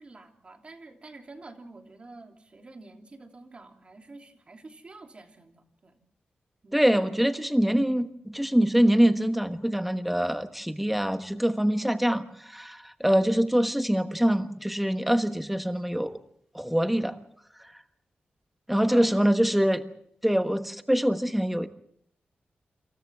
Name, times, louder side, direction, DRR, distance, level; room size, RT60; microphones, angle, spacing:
voice 1, 0.0-5.9 6.6-6.9 18.9-19.2 19.5-19.7, right 2 dB, 35° right, 4 dB, 2.9 m, -48 dB
voice 2, 6.7-16.2 16.5-17.2 18.7-19.8 20.2-21.7, equal, 5° right, 8 dB, 1.2 m, -24 dB
28.5 x 27.0 x 3.5 m, 0.67 s
wide cardioid pair, 160°, 4 cm